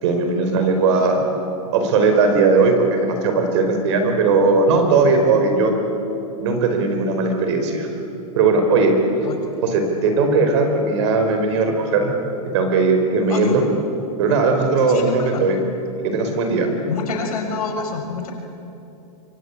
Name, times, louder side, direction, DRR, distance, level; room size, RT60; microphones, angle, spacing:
voice 1, 0.0-1.3 1.7-5.7 6.4-7.9 8.3-8.9 9.6-12.1 12.5-13.6 14.2-15.6 16.0-16.7, right 4 dB, 50° right, 5 dB, 5.0 m, -18 dB
voice 2, 0.9-1.2 9.2-9.4 13.3-13.6 14.9-15.4 16.9-18.3, left 5 dB, 80° left, 3 dB, 6.2 m, -28 dB
27.5 x 24.0 x 8.5 m, 2.9 s
supercardioid pair, 165°, 19 cm